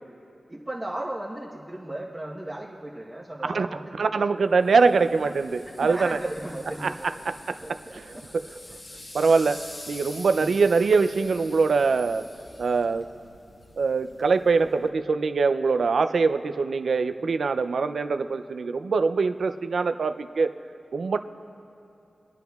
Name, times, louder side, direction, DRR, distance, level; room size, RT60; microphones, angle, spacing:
voice 1, 0.5-4.2 4.8-4.9 5.8-7.1 7.6-8.2 8.7-8.8 9.3-9.6 10.3-10.5, right 1 dB, 15° right, -5 dB, 1.0 m, -36 dB
voice 2, 3.5-6.2 6.8-8.2 9.1-9.6 9.9-12.3 12.6-13.1 13.8-20.5 20.9-21.2, right 4 dB, 80° right, 9 dB, 0.4 m, -23 dB
sound 1, 4.6-14.9, left 1 dB, 55° left, 1.3 m, -46 dB
25.0 x 9.9 x 2.3 m, 2.8 s
wide cardioid pair, 80°, 0 cm